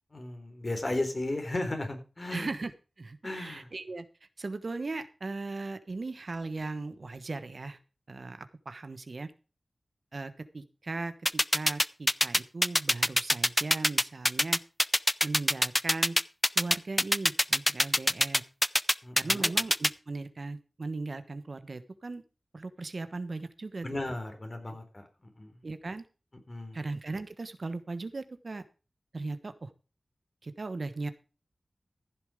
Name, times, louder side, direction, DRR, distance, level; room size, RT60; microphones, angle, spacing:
voice 1, 0.1-2.5 3.2-3.7 19.0-19.5 23.8-25.1 25.4-25.6 26.5-26.8, left 2 dB, 45° left, 5 dB, 4.2 m, -35 dB
voice 2, 2.3-2.7 3.0-4.1 4.4-7.8 8.1-9.3 10.1-14.6 15.2-16.2 16.5-18.4 19.2-22.2 22.5-24.0 24.7-24.8 25.6-26.0 26.7-28.6 29.1-29.7 30.4-31.1, right 3 dB, 65° right, 11 dB, 1.2 m, -38 dB
sound 1, 11.3-19.9, left 1 dB, 20° left, 0.5 m, -23 dB
15.0 x 7.2 x 5.0 m, 0.34 s
cardioid pair, 45°, 0 cm